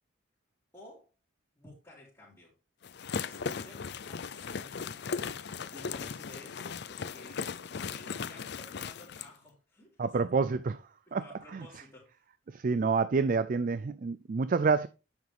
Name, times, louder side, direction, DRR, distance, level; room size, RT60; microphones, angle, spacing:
voice 1, 0.7-1.1 1.5-2.5 3.2-10.5 11.0-12.2, left 1 dB, 15° left, 3.3 m, -54 dB
sound 1, 2.8-9.3, left 6 dB, 55° left, 0.5 m, -37 dB
voice 2, 10.0-10.8 11.1-11.2 11.5-11.6 12.5-14.9, right 4 dB, 40° right, 0.4 m, -28 dB
9.5 x 7.2 x 3.4 m
head